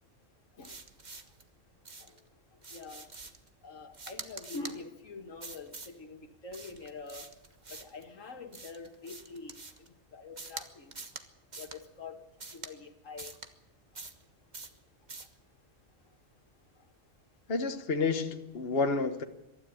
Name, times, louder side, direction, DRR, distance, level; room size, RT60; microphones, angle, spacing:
sound 1, 0.6-1.4 1.9-2.2 2.6-3.5 3.9-4.8 5.4-6.0 6.5-8.0 8.5-9.9 10.4-10.7 10.9-11.3 11.5-11.8 12.4-12.7 13.2-13.5 14.0-14.2 14.5-14.8 15.1-15.3, right 3 dB, 35° right, 1.6 m, -45 dB
voice 1, 2.7-3.1 3.6-7.3 7.7-9.6 10.1-10.9 11.6-12.2 12.5-13.3, left 3 dB, 85° left, 6 dB, 2.3 m, -45 dB
voice 2, 17.5-19.2, left 4 dB, 50° left, 6 dB, 1.5 m, -30 dB
23.5 x 13.0 x 8.9 m, 0.95 s
omnidirectional pair, 1.3 m